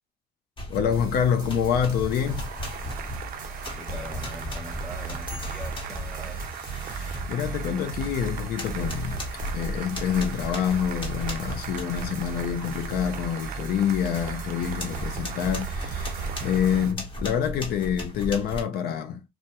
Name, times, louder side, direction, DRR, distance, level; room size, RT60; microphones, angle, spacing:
sound 1, 0.6-1.1 1.5-8.2 8.5-12.9 13.3-13.5 13.9-18.6, left 1 dB, 30° left, 1.0 m, -36 dB
voice 1, 0.7-2.5 6.9-9.2 9.5-19.2, left 8 dB, 65° left, 0.4 m, -27 dB
sound 2, 0.9-16.9, right 4 dB, 25° right, 1.1 m, -37 dB
Cheering / Applause, 2.2-17.0, right 8 dB, 55° right, 0.4 m, -40 dB
voice 2, 3.7-6.6, left 2 dB, 5° left, 0.7 m, -42 dB
2.2 x 2.1 x 2.8 m
cardioid pair, 110°, 17 cm